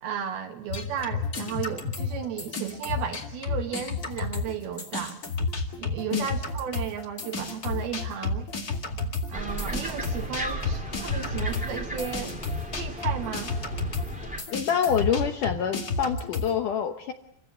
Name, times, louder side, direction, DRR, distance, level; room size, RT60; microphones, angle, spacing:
voice 1, 0.0-5.2 5.8-8.5 9.3-12.4 12.8-13.6, right 8 dB, 70° right, 4 dB, 2.9 m, -34 dB
sound 1, 0.7-4.5 4.8-16.5, left 3 dB, 35° left, 1.6 m, -31 dB
sound 2, 1.0-16.6, left 4 dB, 90° left, 6.0 m, -46 dB
sound 3, 9.3-14.4, right 1 dB, 5° right, 1.5 m, -35 dB
voice 2, 14.5-17.1, left 8 dB, 70° left, 5 dB, 2.0 m, -26 dB
29.0 x 15.5 x 8.3 m, 0.74 s
omnidirectional pair, 4.9 m